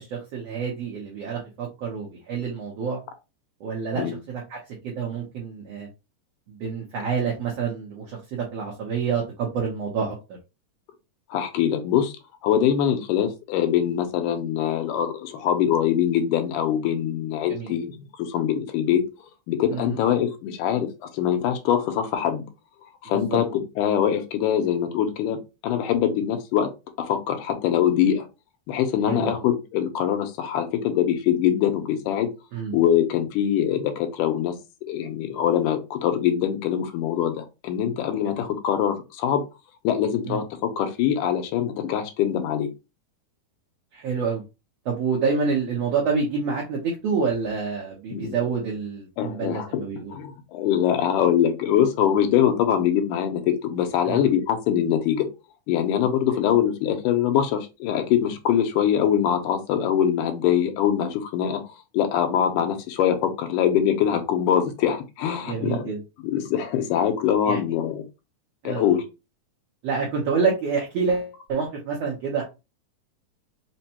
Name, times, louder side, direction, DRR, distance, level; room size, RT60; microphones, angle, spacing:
voice 1, 0.0-3.0 3.6-4.6 4.8-5.9 6.5-10.2 17.5-17.7 19.7-20.0 23.1-23.4 29.1-29.4 32.5-32.8 40.2-40.4 43.9-44.4 44.8-50.1 54.0-54.3 65.5-66.0 67.5-67.6 68.6-68.9 69.8-72.4, right 5 dB, 70° right, -2 dB, 1.6 m, -27 dB
voice 2, 11.3-12.1 12.4-19.0 19.5-20.9 21.1-22.4 23.0-25.4 25.6-26.7 27.0-28.3 28.7-32.3 32.7-34.5 34.9-39.4 39.8-42.7 48.1-48.4 49.2-49.8 50.1-55.3 55.7-61.6 61.9-65.9 66.2-68.0 68.6-69.0, left 9 dB, 85° left, 6 dB, 2.3 m, -23 dB
5.2 x 2.2 x 2.8 m, 0.27 s
omnidirectional pair, 3.7 m